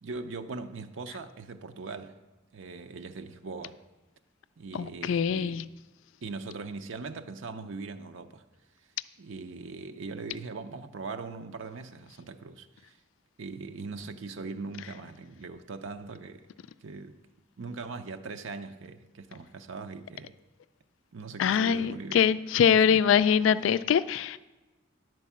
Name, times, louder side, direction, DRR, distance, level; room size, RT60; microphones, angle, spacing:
voice 1, 0.0-2.2 2.5-3.8 4.6-5.7 6.2-8.4 9.2-13.0 13.4-16.5 16.8-17.2 17.6-20.3 21.1-22.3 22.7-23.2, right 4 dB, 75° right, 7 dB, 0.6 m, -40 dB
voice 2, 4.7-5.6 21.4-24.4, left 8 dB, 75° left, 15 dB, 0.3 m, -23 dB
10.5 x 4.6 x 7.2 m, 1.1 s
head